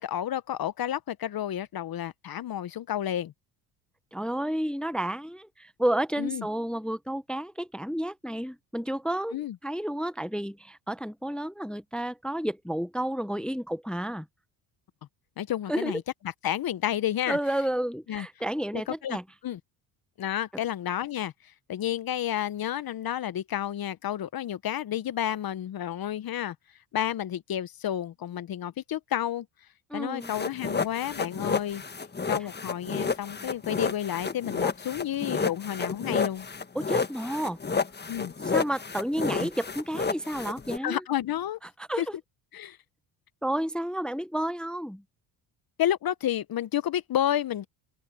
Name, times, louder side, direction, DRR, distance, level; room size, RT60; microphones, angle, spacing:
voice 1, 0.0-3.3 6.2-6.5 9.3-9.6 15.4-16.0 16.4-17.4 18.1-18.3 19.0-19.2 19.4-19.6 20.2-26.5 26.9-29.5 29.9-31.8 32.3-36.5 38.1-38.3 40.8-41.6 42.0-42.1 42.5-42.8 45.8-47.7, left 11 dB, 50° left, 1.1 m, -30 dB
voice 2, 4.1-9.4 9.6-14.3 15.7-16.0 17.3-19.2 29.9-30.3 36.7-37.6 38.4-41.0 41.9-42.1 43.4-45.0, right 1 dB, ahead, 0.9 m, -31 dB
sound 1, 30.2-40.8, left 5 dB, 20° left, 1.5 m, -30 dB
open air
supercardioid pair, 70°, 47 cm